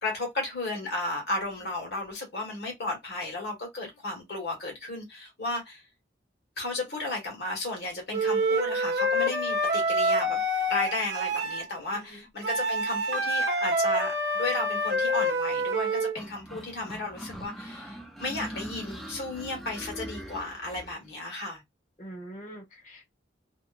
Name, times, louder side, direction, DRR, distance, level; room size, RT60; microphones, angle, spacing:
voice 1, 0.0-5.8 6.6-10.4 10.7-21.6, left 2 dB, 65° left, 1.4 m, -34 dB
Wind instrument woodwind instrument, 8.1-11.6 12.4-16.2, equal, 70° right, 0.6 m, -27 dB
voice 2, 11.9-12.3 18.8-19.0 22.0-23.0, right 1 dB, 45° left, 1.0 m, -44 dB
sound 1, 16.2-21.0, equal, ahead, 0.5 m, -41 dB
2.8 x 2.2 x 2.4 m
head